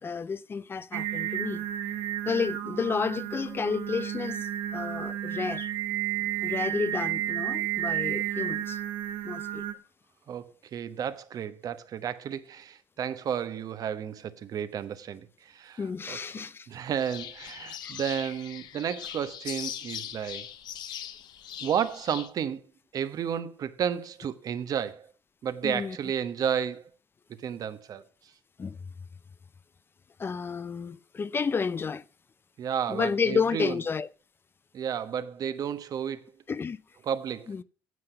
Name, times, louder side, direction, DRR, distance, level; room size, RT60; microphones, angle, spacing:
voice 1, 0.0-1.6 2.3-5.7 6.4-8.8 9.2-9.6 15.8-16.7 17.8-18.0 25.6-26.0 28.6-28.8 30.2-32.0 32.9-34.1 36.5-36.8 37.5-37.6, left 5 dB, 30° left, 0.5 m, -31 dB
Singing, 0.9-9.7, right 12 dB, 75° right, 1.2 m, -32 dB
voice 2, 10.3-20.5 21.6-22.6 22.9-25.1 25.4-26.8 27.4-28.0 32.6-33.7 34.7-36.2 37.0-37.5, right 8 dB, 50° right, 1.1 m, -32 dB
sound 1, 17.0-22.3, left 10 dB, 65° left, 1.1 m, -40 dB
9.5 x 7.7 x 6.8 m
supercardioid pair, 85°, 8 cm